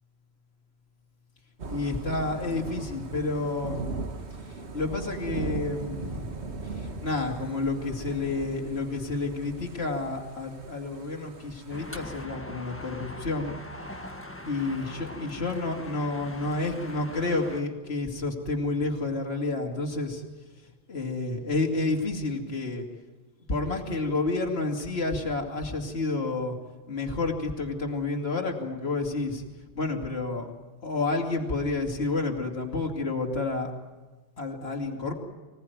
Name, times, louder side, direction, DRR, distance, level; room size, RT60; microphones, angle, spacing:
Thunder / Rain, 1.6-12.2, right 3 dB, 55° right, 1.8 m, -38 dB
voice 1, 1.7-3.9 4.7-6.4 6.8-13.5 14.5-20.2 20.9-22.8 23.5-26.6 26.9-29.4 29.7-30.5 30.8-33.7 34.4-35.1, left 3 dB, 50° left, 1 dB, 2.9 m, -30 dB
sound 1, 11.7-17.6, left 1 dB, 10° left, 1.4 m, -41 dB
25.5 x 18.0 x 9.4 m, 1.3 s
omnidirectional pair, 1.3 m